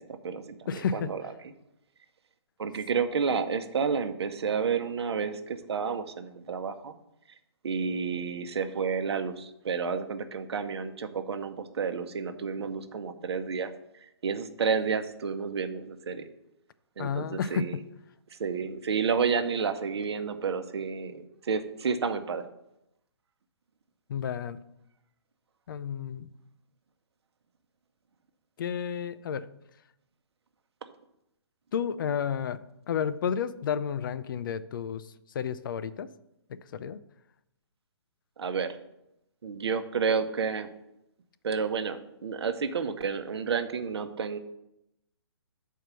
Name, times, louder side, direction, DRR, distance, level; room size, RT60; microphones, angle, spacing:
voice 1, 0.0-1.3 2.6-6.9 7.6-13.7 14.2-16.3 17.0-17.8 18.3-22.4 38.4-38.8 39.4-40.7 41.4-44.4, right 6 dB, 70° right, 9 dB, 0.9 m, -30 dB
voice 2, 0.7-1.1 17.0-17.7 24.1-24.6 25.7-26.3 28.6-29.5 31.7-32.6 32.9-35.0 35.3-36.1 36.7-37.0, left 7 dB, 50° left, 14 dB, 0.5 m, -31 dB
6.7 x 4.6 x 6.1 m, 0.83 s
hypercardioid pair, 145°, 14 cm